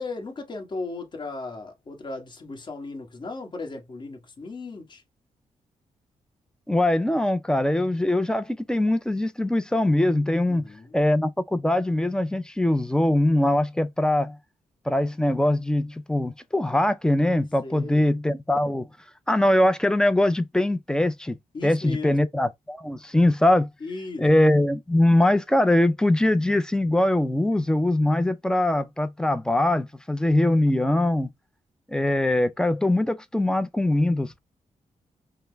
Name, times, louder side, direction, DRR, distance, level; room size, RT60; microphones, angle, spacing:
voice 1, 0.0-5.0 10.5-11.0 17.6-18.0 21.5-22.2 23.8-24.3, left 3 dB, 35° left, 1.4 m, -36 dB
voice 2, 6.7-10.7 10.9-14.4 14.9-18.9 19.3-21.4 21.6-23.7 24.2-31.3 31.9-34.4, left 1 dB, 5° left, 0.4 m, -22 dB
5.6 x 2.0 x 3.3 m
wide cardioid pair, 140°, 13 cm